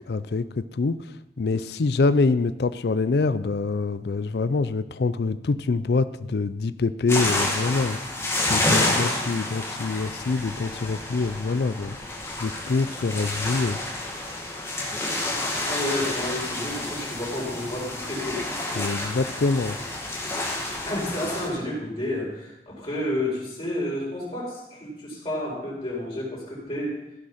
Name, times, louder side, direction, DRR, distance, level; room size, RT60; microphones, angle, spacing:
voice 1, 0.1-1.0 1.4-8.0 8.5-12.0 12.4-13.8 18.8-19.8, left 3 dB, 65° left, 14 dB, 0.4 m, -25 dB
sound 1, 7.1-21.5, left 2 dB, 15° left, 1.9 m, -29 dB
voice 2, 15.6-18.4 20.8-27.0, left 1 dB, 30° left, -4 dB, 4.9 m, -30 dB
15.5 x 6.3 x 5.8 m, 0.87 s
head